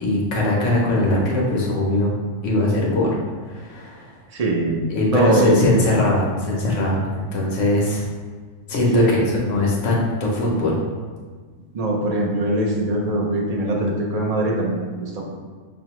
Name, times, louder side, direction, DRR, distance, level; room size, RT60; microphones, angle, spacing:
voice 1, 0.0-2.1 2.4-3.2 3.5-4.1 4.9-8.0 8.7-10.8, left 2 dB, 80° left, -3 dB, 1.1 m, -21 dB
voice 2, 4.3-6.1 8.9-9.3 11.7-15.2, right 1 dB, 55° right, -1 dB, 0.4 m, -22 dB
5.9 x 2.1 x 2.9 m, 1.5 s
omnidirectional pair, 1.3 m